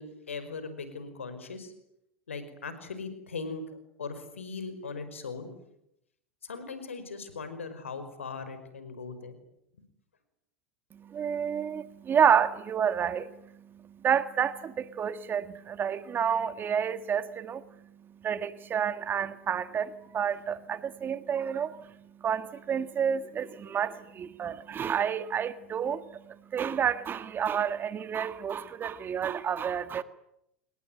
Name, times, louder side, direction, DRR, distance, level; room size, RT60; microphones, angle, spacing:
voice 1, 0.0-1.7 2.3-3.6 4.0-5.5 6.4-9.4, left 4 dB, 90° left, 5.2 m, -39 dB
voice 2, 11.0-13.3 14.0-17.6 18.2-21.9 22.2-30.0, right 8 dB, 30° right, 1.7 m, -29 dB
29.0 x 22.0 x 9.3 m
hypercardioid pair, 90°, 7 cm